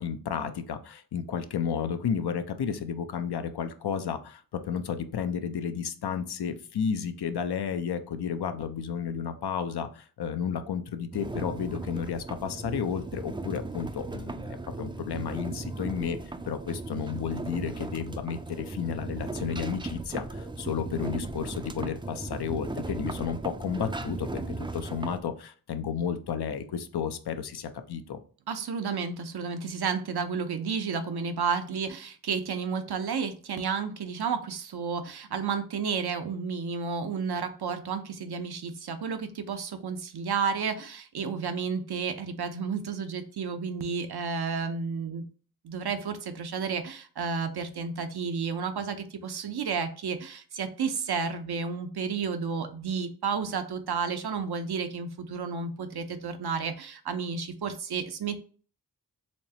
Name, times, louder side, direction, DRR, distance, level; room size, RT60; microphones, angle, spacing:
voice 1, 0.0-28.2, left 7 dB, 85° left, 8 dB, 0.6 m, -32 dB
sound 1, 11.1-25.2, right 2 dB, 15° right, 0.3 m, -37 dB
voice 2, 28.5-45.3 45.6-58.4, right 5 dB, 80° right, 8 dB, 0.7 m, -31 dB
4.3 x 3.1 x 2.8 m, 0.41 s
cardioid pair, 55°, 38 cm